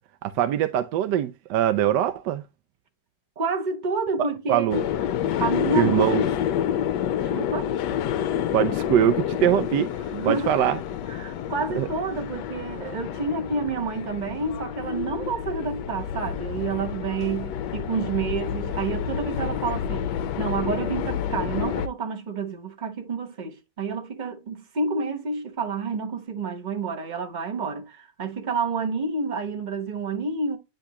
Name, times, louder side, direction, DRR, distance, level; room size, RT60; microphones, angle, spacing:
voice 1, 0.2-2.4 4.2-4.8 5.8-6.2 7.3-7.4 8.5-9.9 10.2-10.8 11.7-11.9, right 11 dB, 75° right, 1.0 m, -22 dB
voice 2, 3.4-4.8 5.4-6.3 7.3-7.7 10.1-10.6 11.1-20.1 20.4-30.6, right 4 dB, 30° right, 0.8 m, -29 dB
sound 1, 4.7-21.9, left 9 dB, 70° left, 1.0 m, -29 dB
10.0 x 3.5 x 2.9 m
omnidirectional pair, 2.3 m